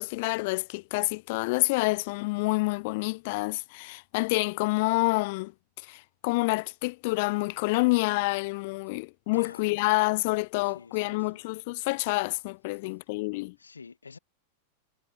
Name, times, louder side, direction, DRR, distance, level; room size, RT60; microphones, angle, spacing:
voice 1, 0.0-5.5 5.8-13.5, left 25 dB, 50° left, 3.2 m, -28 dB
voice 2, 9.3-9.7 10.6-11.4 13.6-14.2, left 5 dB, 75° left, 5.4 m, -48 dB
figure-of-eight pair, 90°, 0 cm